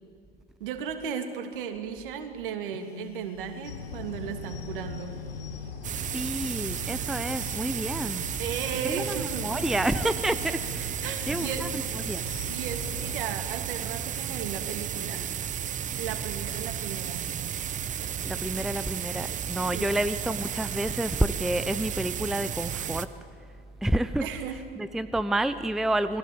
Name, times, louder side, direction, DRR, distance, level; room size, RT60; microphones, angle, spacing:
voice 1, 0.6-5.2 8.4-9.5 11.0-11.7 12.4-15.3 16.0-17.2 19.7-20.0 24.2-24.6, right 8 dB, 60° right, 7 dB, 2.8 m, -35 dB
Telephone, 2.7-5.8, left 5 dB, 80° left, 1.1 m, -44 dB
sound 1, 3.6-13.2, left 5 dB, 60° left, 4.0 m, -41 dB
sound 2, 5.8-23.1, right 9 dB, 25° right, 1.0 m, -33 dB
voice 2, 6.1-8.3 8.8-12.2 18.2-23.1 23.8-24.3 24.8-26.2, right 1 dB, ahead, 13 dB, 0.7 m, -29 dB
28.5 x 21.0 x 8.6 m, 2.4 s
figure-of-eight pair, 80°, 30 cm